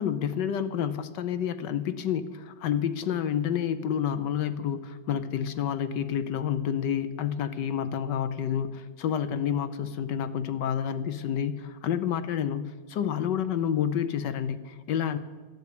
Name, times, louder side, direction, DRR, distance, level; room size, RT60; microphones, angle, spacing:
voice 1, 0.0-15.2, left 8 dB, 70° left, 12 dB, 1.2 m, -29 dB
14.0 x 8.2 x 8.5 m, 1.3 s
omnidirectional pair, 2.2 m